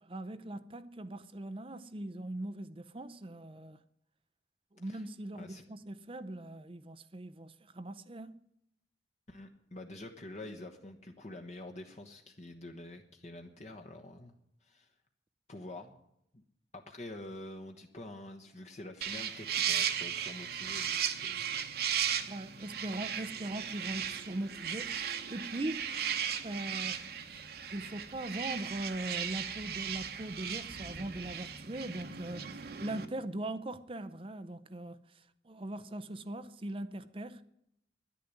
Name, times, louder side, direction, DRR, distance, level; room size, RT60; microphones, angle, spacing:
voice 1, 0.0-3.8 4.7-8.4 22.3-25.9 26.4-27.0 27.7-37.4, right 1 dB, 30° right, 0.6 m, -40 dB
voice 2, 9.3-14.3 14.6-14.9 15.5-16.0 16.3-16.4 16.7-21.5, left 1 dB, 40° left, 1.1 m, -47 dB
sound 1, 19.0-33.0, right 8 dB, 55° right, 1.1 m, -36 dB
11.0 x 10.0 x 9.9 m
head